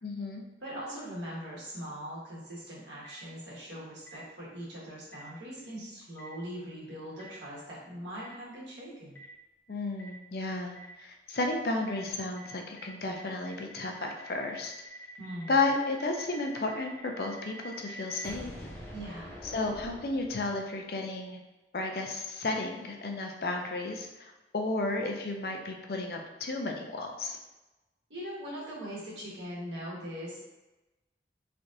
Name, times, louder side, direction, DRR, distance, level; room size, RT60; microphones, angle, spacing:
voice 1, 0.0-0.4 9.7-14.7 15.5-18.5 19.5-21.4 21.7-27.4, left 2 dB, 55° left, 2 dB, 0.5 m, -33 dB
voice 2, 0.6-9.2 15.2-15.6 18.9-19.4 28.1-30.4, equal, 90° right, -6 dB, 1.4 m, -41 dB
Boom, 3.0-3.1 4.1-4.2 5.1-5.2 6.2-6.3 7.2-7.3 8.2-8.3 9.1-9.2 10.0-10.1 10.7-10.8 11.3-11.4 11.9-12.0 12.4-12.5 12.8-12.9 13.1-20.7, right 1 dB, 10° left, 0.7 m, -46 dB
3.7 x 3.3 x 2.6 m, 1.1 s
head